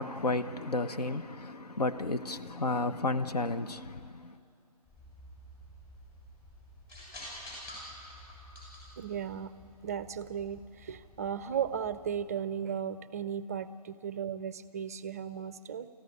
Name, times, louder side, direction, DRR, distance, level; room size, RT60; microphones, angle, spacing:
voice 1, 0.0-3.9, left 2 dB, 80° left, 1.2 m, -32 dB
sound 1, 4.8-12.2, equal, 20° left, 7.3 m, -50 dB
voice 2, 9.0-9.5 9.8-15.9, right 8 dB, 25° right, 0.5 m, -36 dB
28.0 x 14.5 x 9.7 m
hypercardioid pair, 155°, 20 cm